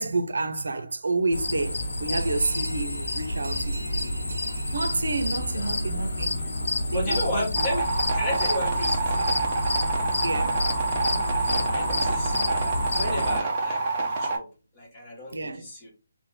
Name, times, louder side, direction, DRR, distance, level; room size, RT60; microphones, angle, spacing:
voice 1, 0.0-4.1 4.7-6.4 6.9-7.7 10.2-10.6 15.3-15.7, right 3 dB, 80° right, 0.6 m, -29 dB
sound 1, 1.3-13.4, left 1 dB, 80° left, 1.2 m, -29 dB
sound 2, 2.2-6.4, right 2 dB, 50° right, 1.1 m, -45 dB
voice 2, 6.9-9.3 11.7-14.5 14.7-15.9, left 1 dB, 15° left, 0.9 m, -34 dB
sound 3, 7.6-14.4, right 3 dB, 20° right, 0.6 m, -27 dB
3.5 x 2.2 x 4.3 m
hypercardioid pair, 180°, 0 cm